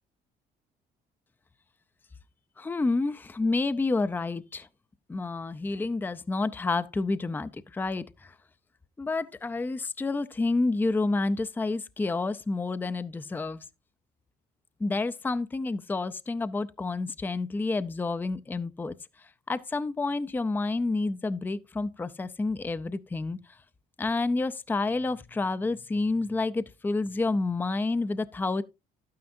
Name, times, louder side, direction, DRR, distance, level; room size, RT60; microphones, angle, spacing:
voice 1, 2.6-4.7 5.1-8.3 9.0-13.6 14.8-18.9 19.5-23.4 24.0-28.6, left 3 dB, 10° left, 0.4 m, -29 dB
12.0 x 9.4 x 2.6 m
cardioid pair, 110°, 17 cm